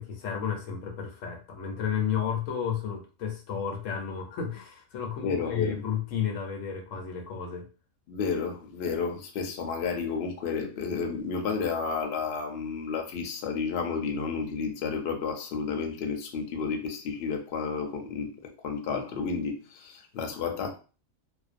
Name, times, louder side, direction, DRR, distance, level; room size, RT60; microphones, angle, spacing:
voice 1, 0.0-7.7, left 8 dB, 85° left, 1.0 m, -32 dB
voice 2, 5.2-5.8 8.1-20.8, left 5 dB, 65° left, 0.7 m, -31 dB
2.5 x 2.1 x 2.4 m
omnidirectional pair, 1.3 m